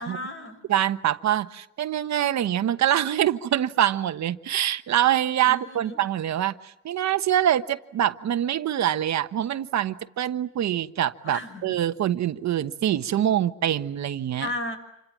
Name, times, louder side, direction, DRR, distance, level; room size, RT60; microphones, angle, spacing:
voice 1, 0.0-0.6 5.4-6.0 11.2-11.8 14.4-14.8, left 1 dB, 40° left, 8 dB, 6.4 m, -34 dB
voice 2, 0.7-14.5, right 11 dB, 65° right, 11 dB, 1.2 m, -25 dB
27.5 x 26.0 x 7.4 m, 0.83 s
cardioid pair, 90°, 30 cm